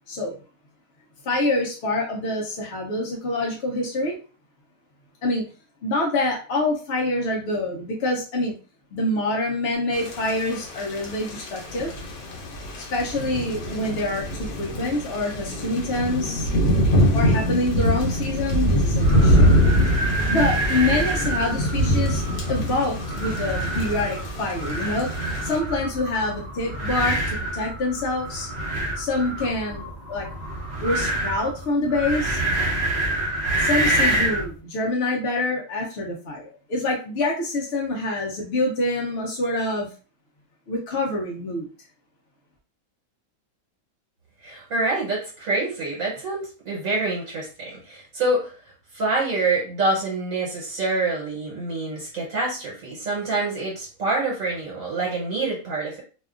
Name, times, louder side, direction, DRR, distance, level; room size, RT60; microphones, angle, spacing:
voice 1, 1.2-4.2 5.2-5.4 5.8-8.5 8.9-11.9 12.8-16.5 17.1-19.5 20.0-22.2 22.5-25.1 25.4-28.5 29.0-30.3 30.8-32.4 33.6-39.9 40.7-41.7, left 2 dB, 60° left, -1 dB, 0.7 m, -26 dB
Thunder / Rain, 9.9-25.6, equal, 85° left, 1.2 m, -24 dB
sound 1, 19.0-34.5, right 1 dB, 45° right, 0.6 m, -27 dB
voice 2, 44.4-48.5 48.9-56.0, right 2 dB, 70° right, -4 dB, 1.3 m, -26 dB
2.7 x 2.3 x 2.4 m, 0.36 s
omnidirectional pair, 1.5 m